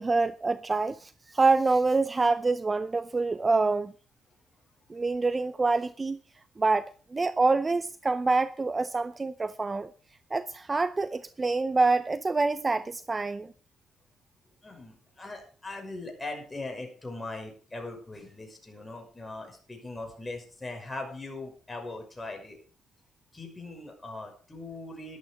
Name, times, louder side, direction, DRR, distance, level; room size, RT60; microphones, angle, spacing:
voice 1, 0.0-3.9 4.9-6.2 6.6-9.9 10.3-13.5, right 3 dB, 25° right, 0.6 m, -26 dB
voice 2, 14.6-22.6 23.3-25.2, left 2 dB, 15° left, 5.7 m, -40 dB
12.5 x 12.0 x 5.0 m
cardioid pair, 90°, 0 cm